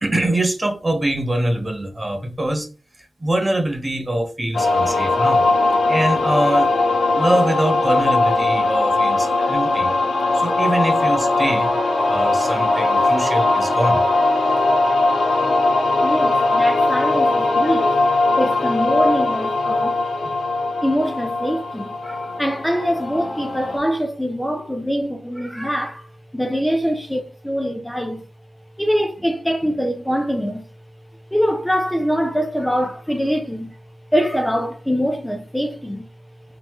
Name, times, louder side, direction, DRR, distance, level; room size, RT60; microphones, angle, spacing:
voice 1, 0.0-2.7 3.2-5.5 5.9-6.7 7.1-9.9 10.3-11.8 12.1-14.0, right 1 dB, 25° right, 0.9 m, -23 dB
sound 1, 4.5-23.8, left 2 dB, 75° left, 1.0 m, -19 dB
voice 2, 16.0-18.0 18.4-20.4 20.8-28.3 28.8-30.7 31.3-33.8 34.1-36.1, equal, 5° left, 0.6 m, -23 dB
3.8 x 2.9 x 3.0 m
cardioid pair, 75°, 0 cm